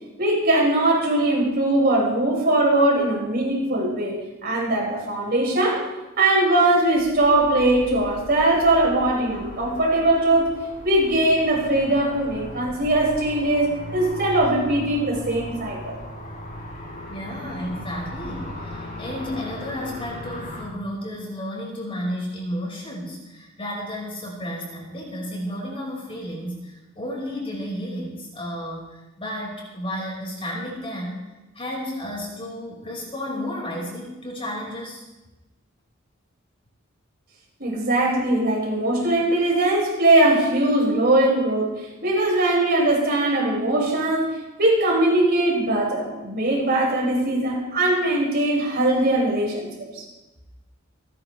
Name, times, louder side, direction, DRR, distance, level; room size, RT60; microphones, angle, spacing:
voice 1, 0.2-5.8 6.2-10.5 10.8-16.0 37.6-49.7 49.9-50.0, right 1 dB, 50° right, -4 dB, 6.0 m, -21 dB
sound 1, 6.9-20.6, left 1 dB, 45° left, 6.3 m, -38 dB
voice 2, 17.1-31.2 31.5-35.0, equal, 30° left, -3 dB, 5.4 m, -32 dB
29.5 x 11.0 x 3.4 m, 1.1 s
head